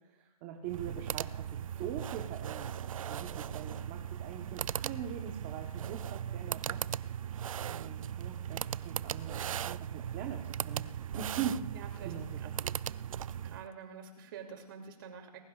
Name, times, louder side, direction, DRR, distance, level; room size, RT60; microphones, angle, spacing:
voice 1, 0.0-6.8 7.6-10.9 11.1-11.6 12.0-12.8, right 9 dB, 20° right, 2 dB, 1.0 m, -42 dB
sound 1, 0.6-13.7, right 9 dB, 60° right, 0.4 m, -38 dB
voice 2, 11.7-12.5 13.4-15.4, right 6 dB, 35° right, 3 dB, 2.7 m, -47 dB
21.5 x 21.0 x 2.4 m, 1.0 s
hypercardioid pair, 170°, 20 cm